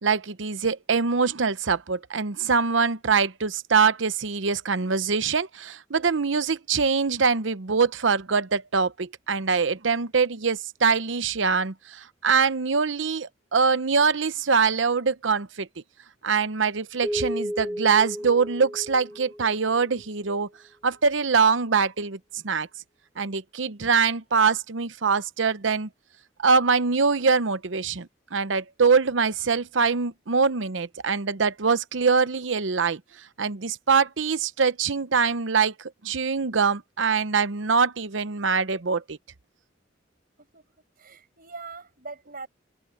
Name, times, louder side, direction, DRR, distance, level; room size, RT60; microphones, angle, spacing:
voice 1, 0.0-15.7 16.2-20.5 20.8-22.7 23.2-25.9 26.4-33.0 33.4-35.7 36.0-39.2, right 5 dB, 80° right, 0.8 m, -23 dB
Keyboard (musical), 17.0-20.0, equal, 5° right, 3.2 m, -33 dB
voice 2, 41.0-42.5, right 4 dB, 50° right, 6.9 m, -41 dB
head